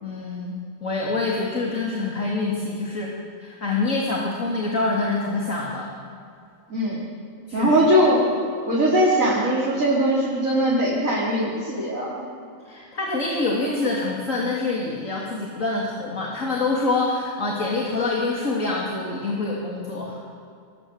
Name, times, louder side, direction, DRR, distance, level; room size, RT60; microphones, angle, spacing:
voice 1, 0.0-3.1 3.4-5.9 7.5-7.8 12.7-20.2, left 3 dB, 65° left, -3 dB, 3.3 m, -26 dB
voice 2, 6.7-7.1 7.5-8.3 8.7-12.2, equal, 70° right, -6 dB, 4.6 m, -20 dB
27.5 x 21.0 x 8.1 m, 2.4 s
omnidirectional pair, 1.5 m